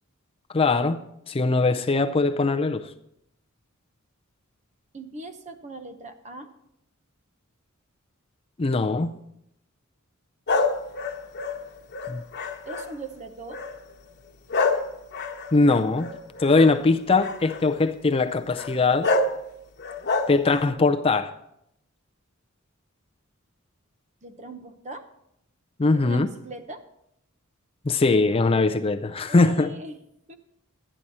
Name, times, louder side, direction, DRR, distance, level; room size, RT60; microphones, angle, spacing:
voice 1, 0.5-1.0 1.3-2.9 8.6-9.1 12.1-12.2 15.5-16.1 16.4-19.1 20.3-21.3 25.8-26.3 27.9-29.7, left 3 dB, 25° left, 0.4 m, -21 dB
voice 2, 4.9-6.5 12.7-13.6 24.2-25.1 25.9-26.8 29.3-30.0 30.3-30.4, right 2 dB, 35° right, 0.9 m, -40 dB
sound 1, 10.5-13.0 13.5-13.9 14.5-16.7 17.2-17.6 18.5-18.7 19.0-19.4 19.8-20.7, left 3 dB, 50° left, 1.1 m, -27 dB
12.0 x 10.0 x 4.2 m
head